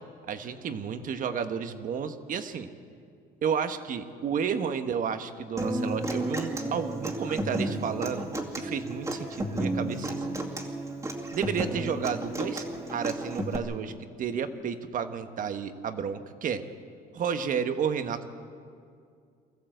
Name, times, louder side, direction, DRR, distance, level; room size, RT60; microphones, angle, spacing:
voice 1, 0.3-2.7 3.4-8.3 8.6-10.3 11.3-12.6 12.9-13.9 14.2-16.6 17.1-18.3, right 7 dB, 50° right, 9 dB, 1.4 m, -31 dB
Human voice / Acoustic guitar, 5.6-13.6, right 1 dB, 20° right, 2.4 m, -32 dB
24.5 x 14.5 x 7.9 m, 2.3 s
cardioid pair, 110°, 17 cm